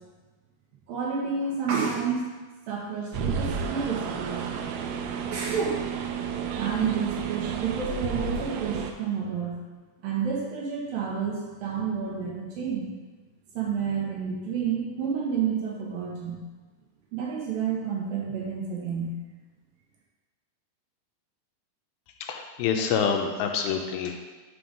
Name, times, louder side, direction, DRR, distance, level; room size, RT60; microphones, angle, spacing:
voice 1, 0.9-2.3 2.7-4.5 5.3-5.9 6.6-9.5 10.0-12.9 13.5-16.4 17.1-19.1, right 6 dB, 70° right, -4 dB, 3.0 m, -30 dB
sound 1, 3.1-8.9, right 6 dB, 85° right, 2.6 m, -31 dB
voice 2, 22.2-24.2, left 6 dB, 80° left, 4 dB, 2.5 m, -27 dB
7.8 x 3.9 x 5.2 m, 1.3 s
omnidirectional pair, 4.4 m